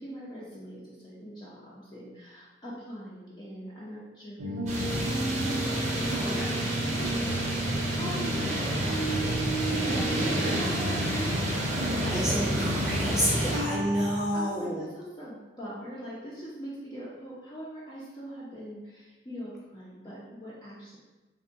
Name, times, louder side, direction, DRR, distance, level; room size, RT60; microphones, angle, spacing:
voice 1, 0.0-9.5 9.8-12.3 13.0-13.6 14.3-21.0, equal, 25° left, -8 dB, 0.5 m, -41 dB
sound 1, 4.4-14.2, right 1 dB, 90° right, 0.5 m, -32 dB
sound 2, 4.7-13.6, right 1 dB, 40° right, 0.6 m, -31 dB
voice 2, 12.1-14.8, equal, 5° right, -6 dB, 0.8 m, -30 dB
3.5 x 2.1 x 3.8 m, 1.1 s
head